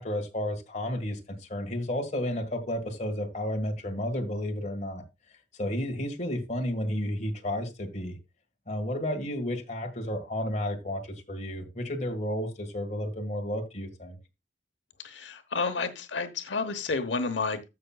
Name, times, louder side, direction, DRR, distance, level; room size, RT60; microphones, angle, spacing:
voice 1, 0.0-5.0 5.6-8.2 8.7-14.2, left 1 dB, 40° left, 1.7 m, -32 dB
voice 2, 15.0-17.6, left 4 dB, 90° left, 1.0 m, -30 dB
14.5 x 5.9 x 2.3 m
head